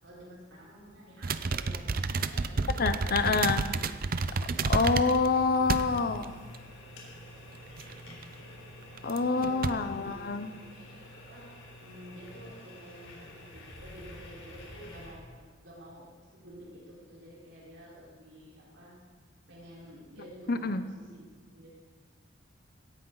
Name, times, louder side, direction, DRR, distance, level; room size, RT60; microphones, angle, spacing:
voice 1, 0.0-3.3 3.7-4.6 5.7-6.4 9.1-11.0 11.3-11.5 11.8-16.1 16.3-18.9 19.5-21.3 21.5-21.8, equal, 85° right, -6 dB, 5.0 m, -51 dB
sound 1, 1.2-5.3 5.7-6.2 6.5-6.6 7.8-8.2 9.0-9.2 9.4-9.7, right 4 dB, 50° right, 0.6 m, -30 dB
sound 2, 2.6-15.1, left 1 dB, 90° left, 3.9 m, -49 dB
voice 2, 2.8-3.6 4.7-6.3 9.0-10.5 20.5-20.8, left 4 dB, 50° left, 10 dB, 0.7 m, -27 dB
17.5 x 15.0 x 4.0 m, 1.5 s
head